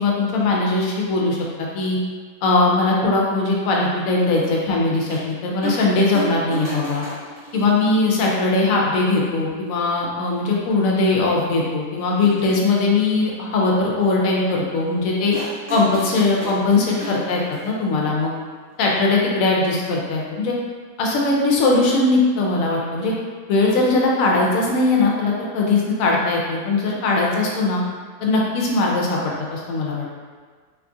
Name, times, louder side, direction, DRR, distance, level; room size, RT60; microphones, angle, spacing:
voice 1, 0.0-2.0 2.4-7.0 7.5-15.3 15.7-18.3 18.8-20.6 21.0-23.1 23.5-27.8 28.2-30.1, left 3 dB, 70° left, -2 dB, 0.9 m, -20 dB
sound 1, 5.1-5.2 5.6-5.9 6.1-8.3 9.2-9.3 10.3-10.4 10.7-10.8 12.0-12.6 15.3-17.7 18.9-19.0, right 2 dB, 45° right, 1.1 m, -33 dB
2.8 x 2.3 x 2.6 m, 1.5 s
omnidirectional pair, 1.7 m